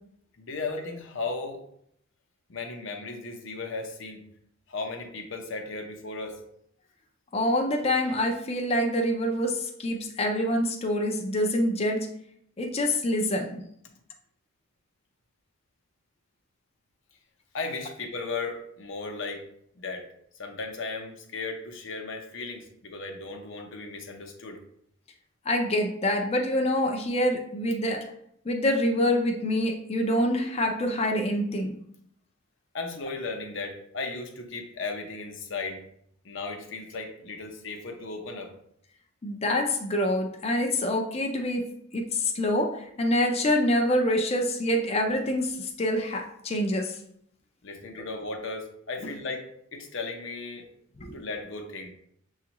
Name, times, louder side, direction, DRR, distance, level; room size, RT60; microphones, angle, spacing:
voice 1, 0.4-1.6 2.5-4.2 4.7-6.4 17.5-19.5 19.8-20.1 20.4-24.6 32.7-35.8 36.2-38.5 47.6-49.5 49.7-50.7 51.1-51.9, left 3 dB, 60° left, 3 dB, 0.7 m, -36 dB
voice 2, 7.3-12.1 12.6-13.6 25.5-28.0 28.5-31.8 39.2-47.0 51.0-51.2, left 1 dB, 30° left, 3 dB, 0.4 m, -26 dB
6.8 x 2.4 x 2.9 m, 0.70 s
head